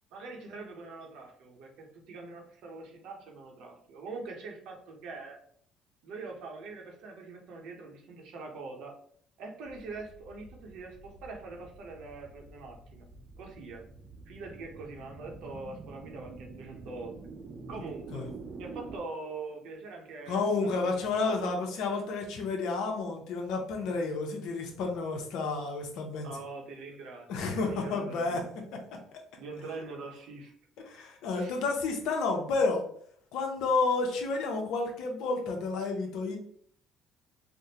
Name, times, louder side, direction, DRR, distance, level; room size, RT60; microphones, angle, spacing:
voice 1, 0.1-5.4 6.0-8.9 9.4-13.1 13.4-13.9 14.3-17.2 17.7-18.2 18.6-21.5 23.8-24.0 26.2-27.3 27.6-28.4 29.4-30.5 31.3-31.6, right 3 dB, 75° right, 2 dB, 0.8 m, -43 dB
sound 1, 9.7-19.0, right 3 dB, 40° right, 0.6 m, -47 dB
voice 2, 20.3-26.3 27.3-28.5 30.9-32.8 33.3-36.4, left 3 dB, 75° left, 3 dB, 0.7 m, -30 dB
3.5 x 2.1 x 2.7 m, 0.62 s
supercardioid pair, 75°, 0 cm